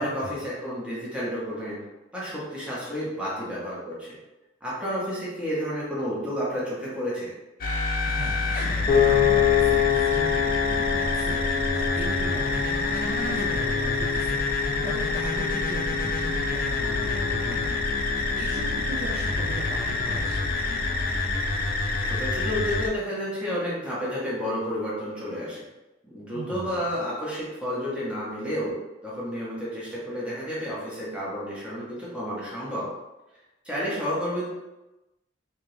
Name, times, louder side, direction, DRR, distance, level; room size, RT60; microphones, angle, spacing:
voice 1, 0.0-1.8 2.1-4.2 4.6-7.3 22.0-25.6 26.1-28.8 29.0-32.9 33.6-34.5, equal, 5° right, -8 dB, 1.2 m, -31 dB
sound 1, 7.6-22.9, left 3 dB, 50° left, 0.5 m, -27 dB
voice 2, 8.1-17.8 18.1-19.8 20.0-20.4 26.3-26.8, right 2 dB, 45° right, -5 dB, 0.6 m, -38 dB
Piano, 8.9-21.1, left 8 dB, 25° left, 0.9 m, -28 dB
3.4 x 2.9 x 3.4 m, 1.0 s
head